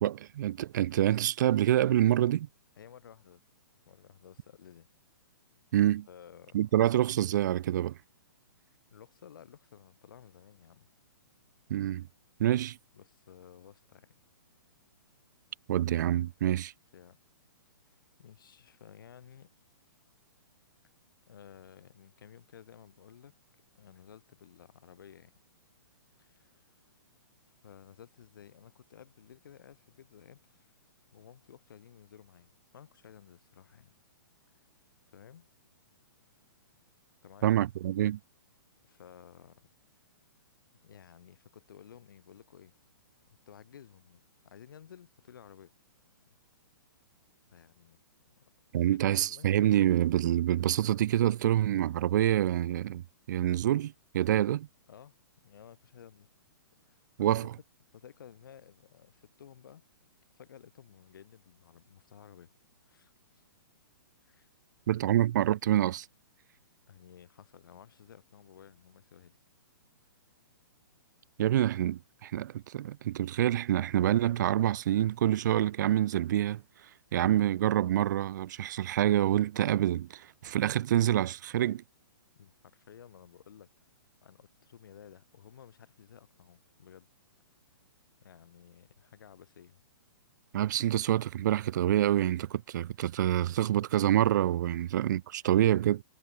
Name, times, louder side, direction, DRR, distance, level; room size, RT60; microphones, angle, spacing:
voice 1, 0.0-2.5 5.7-6.1 6.5-8.0 11.7-12.1 12.4-12.8 15.7-16.7 37.4-38.2 48.7-54.7 57.2-57.5 64.9-66.1 71.4-76.6 77.1-81.8 90.5-96.0, right 12 dB, 55° right, 0.4 m, -27 dB
voice 2, 2.8-3.4 3.9-4.9 6.1-6.6 8.9-10.9 12.9-14.2 16.9-17.2 18.2-19.5 21.3-23.3 23.7-25.3 26.2-26.8 27.6-30.7 31.1-33.9 35.1-35.5 37.2-37.5 38.8-39.6 40.8-42.7 43.5-45.7 47.5-48.0 48.3-48.4 48.7-49.5 54.9-55.1 55.4-56.3 56.8-57.5 57.9-59.8 60.3-62.5 62.9-63.4 64.2-64.5 65.1-65.2 66.9-69.4 82.4-83.7 84.2-87.1 88.2-89.8 94.7-94.8, left 9 dB, 70° left, 3.7 m, -54 dB
hypercardioid pair, 130°, 12 cm